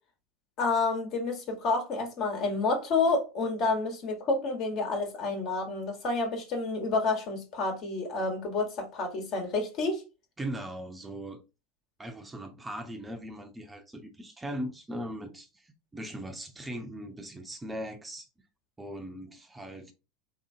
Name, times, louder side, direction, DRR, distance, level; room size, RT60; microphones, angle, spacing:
voice 1, 0.6-10.0, left 3 dB, 50° left, 1.3 m, -29 dB
voice 2, 10.4-11.4 12.0-18.3 18.8-19.9, right 1 dB, 15° right, 0.6 m, -39 dB
3.2 x 2.8 x 2.7 m
hypercardioid pair, 90°, 0 cm